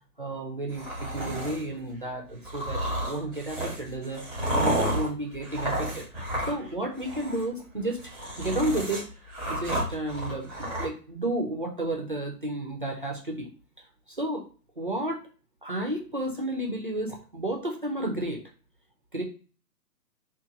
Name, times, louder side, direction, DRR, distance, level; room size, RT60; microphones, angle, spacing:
voice 1, 0.2-4.2 4.5-6.1 6.5-9.1 9.5-13.5 14.1-14.4 14.8-15.2 15.6-18.4 19.1-19.2, right 1 dB, 35° right, 1 dB, 0.4 m, -32 dB
sound 1, 0.7-1.6 2.4-6.7 7.0-7.4 7.9-10.8, right 1 dB, ahead, 0.7 m, -31 dB
2.9 x 2.3 x 3.5 m, 0.37 s
figure-of-eight pair, 130°, 48 cm